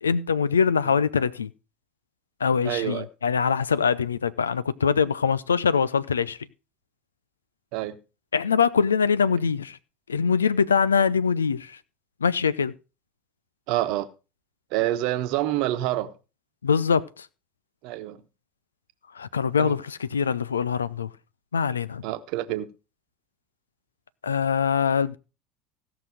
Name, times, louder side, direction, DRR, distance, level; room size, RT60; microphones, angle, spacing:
voice 1, 0.0-1.5 2.4-6.4 8.3-9.8 10.1-11.8 12.2-12.7 16.6-17.3 19.1-21.1 21.5-22.0 24.2-25.2, left 6 dB, 85° left, 0.5 m, -23 dB
voice 2, 2.6-3.1 7.7-8.0 13.7-14.1 14.7-16.1 17.8-18.2 19.6-19.7 22.0-22.7, right 15 dB, 60° right, 1.1 m, -27 dB
16.0 x 6.0 x 4.9 m
figure-of-eight pair, 70°, 0 cm